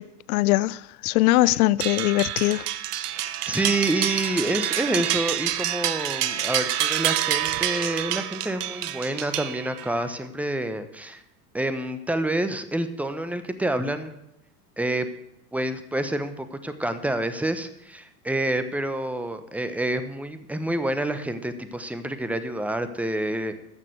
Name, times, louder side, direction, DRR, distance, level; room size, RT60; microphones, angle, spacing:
voice 1, 0.0-2.7, left 17 dB, 60° left, 0.6 m, -22 dB
sound 1, 1.8-10.0, right 12 dB, 70° right, 1.0 m, -27 dB
voice 2, 3.1-11.2 11.5-14.1 14.8-15.1 15.5-23.5, right 1 dB, 5° right, 1.0 m, -28 dB
13.0 x 6.7 x 7.9 m
hypercardioid pair, 95°, 48 cm